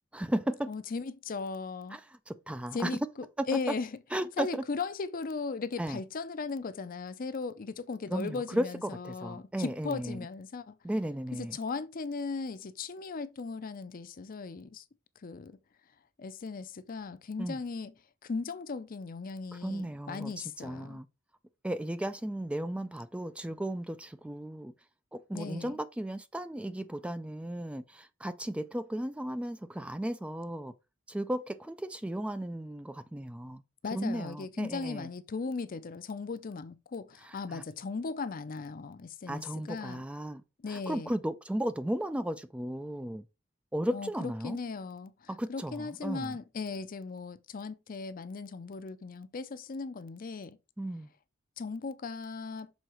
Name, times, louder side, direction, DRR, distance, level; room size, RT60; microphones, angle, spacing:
voice 1, 0.1-0.7 1.9-2.0 2.3-2.9 3.4-3.7 4.1-4.6 5.8-6.0 8.1-10.2 10.8-11.6 17.4-17.6 19.6-21.1 21.6-24.7 25.1-30.7 31.1-33.6 33.9-35.1 37.2-37.6 39.3-40.4 40.7-43.2 43.7-44.6 45.3-46.4 50.8-51.1, right 1 dB, 5° right, 0.3 m, -35 dB
voice 2, 0.7-2.0 2.7-3.9 4.4-10.8 11.4-14.8 15.2-15.6 16.2-17.9 18.2-21.0 25.3-25.8 33.8-40.0 40.6-41.1 43.9-50.6 51.6-52.7, left 4 dB, 45° left, 0.5 m, -37 dB
6.3 x 3.9 x 4.4 m
head